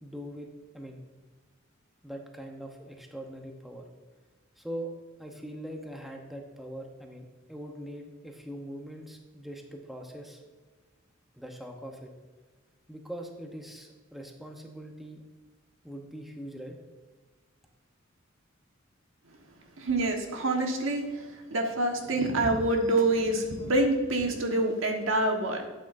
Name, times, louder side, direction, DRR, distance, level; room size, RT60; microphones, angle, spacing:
voice 1, 0.0-1.0 2.0-3.9 4.6-4.9 5.2-10.4 11.3-12.1 12.9-15.2 15.8-16.8, right 1 dB, ahead, 2 dB, 0.8 m, -42 dB
voice 2, 19.8-25.7, right 2 dB, 70° right, 3 dB, 1.4 m, -27 dB
12.5 x 8.5 x 2.6 m, 1.3 s
head